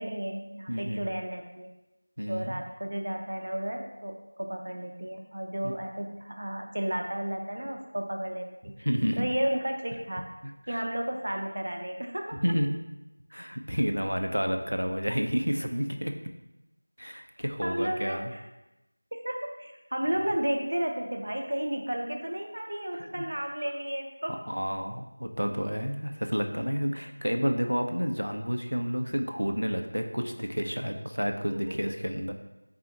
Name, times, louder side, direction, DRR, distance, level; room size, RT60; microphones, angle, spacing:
voice 1, 0.0-1.7 2.3-8.7 9.2-10.3 10.7-12.4 17.6-18.5 19.1-24.4 31.5-31.9, right 1 dB, 45° right, 3 dB, 0.6 m, -33 dB
voice 2, 0.7-1.0 2.2-2.6 5.6-5.7 8.8-9.3 10.7-10.8 12.4-12.7 13.3-16.1 17.0-18.3 23.0-23.1 24.5-32.3, equal, 90° right, 5 dB, 0.6 m, -30 dB
4.1 x 3.8 x 2.8 m, 0.99 s
figure-of-eight pair, 175°, 0 cm